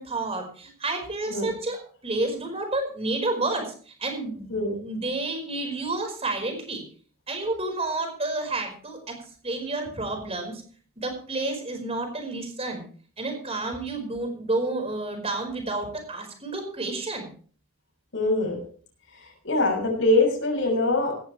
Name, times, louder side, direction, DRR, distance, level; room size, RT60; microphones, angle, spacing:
voice 1, 0.0-6.8 7.3-10.6 11.0-12.8 13.2-17.3, right 2 dB, 30° right, 5 dB, 4.8 m, -30 dB
voice 2, 18.1-18.6 19.1-21.1, left 2 dB, 60° left, 1 dB, 6.4 m, -23 dB
17.0 x 14.0 x 3.3 m, 0.42 s
head